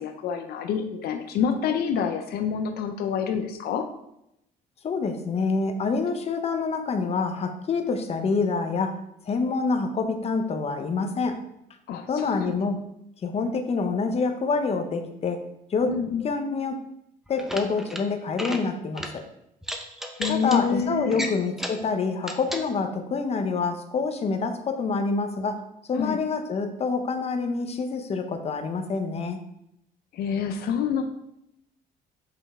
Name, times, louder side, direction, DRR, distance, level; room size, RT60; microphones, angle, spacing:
voice 1, 0.0-3.8 11.9-12.7 15.9-16.3 20.2-21.2 25.9-26.2 30.1-31.0, left 7 dB, 70° left, 5 dB, 0.6 m, -27 dB
voice 2, 4.8-9.0 9.3-11.4 12.1-12.8 13.2-15.4 15.7-15.9 16.2-16.8 17.3-19.2 20.3-25.6 25.9-29.4, left 4 dB, 40° left, 6 dB, 0.8 m, -26 dB
sound 1, 17.3-18.0 18.3-18.6 19.0-19.1 19.6-20.6 21.1-21.8 22.2-22.6, equal, ahead, 0.8 m, -33 dB
5.5 x 5.3 x 3.6 m, 0.79 s
cardioid pair, 110°, 17 cm